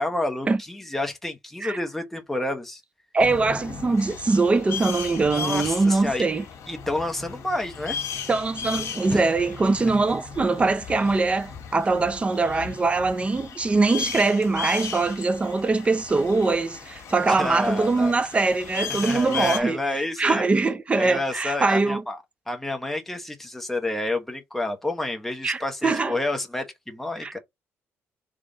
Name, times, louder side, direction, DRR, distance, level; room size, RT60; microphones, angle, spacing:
voice 1, 0.0-2.8 5.2-6.3 6.7-8.0 9.1-9.3 17.3-18.2 18.9-20.4 20.9-27.4, left 2 dB, 5° left, 1.1 m, -29 dB
voice 2, 3.1-6.4 8.3-19.8 20.2-22.0 25.4-26.2 27.2-27.4, right 3 dB, 25° right, 0.6 m, -22 dB
sound 1, 3.2-19.6, left 7 dB, 75° left, 1.4 m, -36 dB
3.7 x 3.3 x 3.9 m
cardioid pair, 120°, 5 cm